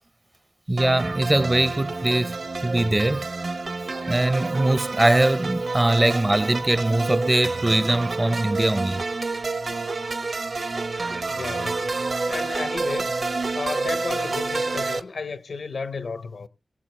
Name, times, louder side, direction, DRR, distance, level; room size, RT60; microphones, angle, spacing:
voice 1, 0.7-3.3 4.1-9.0, right 1 dB, 20° right, 0.5 m, -22 dB
sound 1, 0.8-15.0, right 3 dB, 60° right, 0.9 m, -28 dB
voice 2, 11.2-13.1 13.5-16.5, left 4 dB, 85° left, 0.8 m, -33 dB
21.0 x 7.8 x 3.1 m
wide cardioid pair, 115°, 0 cm